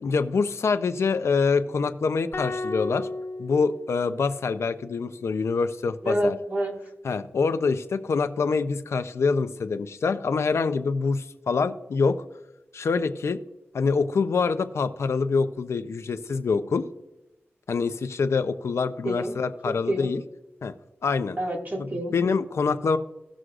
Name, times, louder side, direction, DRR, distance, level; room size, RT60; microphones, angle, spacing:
voice 1, 0.0-3.1 3.4-6.4 7.0-12.2 12.7-13.4 13.7-16.8 17.7-20.2 20.6-20.7 21.0-21.4 22.1-23.0, left 4 dB, 85° left, 10 dB, 0.6 m, -25 dB
sound 1, 2.3-4.7, left 2 dB, 60° left, 1.4 m, -34 dB
voice 2, 6.0-6.8 19.0-19.4 19.6-20.1 21.4-22.1, right 1 dB, 40° right, 0 dB, 2.1 m, -28 dB
17.5 x 6.3 x 2.5 m, 0.97 s
cardioid pair, 55°, 5 cm